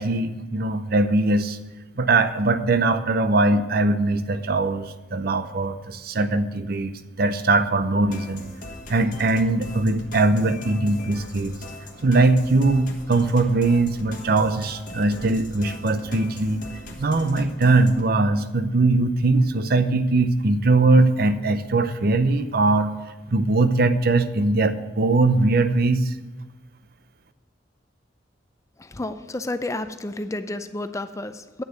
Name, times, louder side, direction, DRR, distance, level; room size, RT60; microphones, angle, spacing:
voice 1, 0.0-1.6 2.0-8.4 8.9-11.5 12.0-16.6 17.0-22.9 23.3-26.1, right 2 dB, 55° right, 10 dB, 0.7 m, -21 dB
sound 1, 8.0-18.0, left 2 dB, 45° left, 1.4 m, -40 dB
voice 2, 28.8-31.6, left 2 dB, 15° left, 10 dB, 0.4 m, -31 dB
9.3 x 6.7 x 8.0 m, 1.1 s
head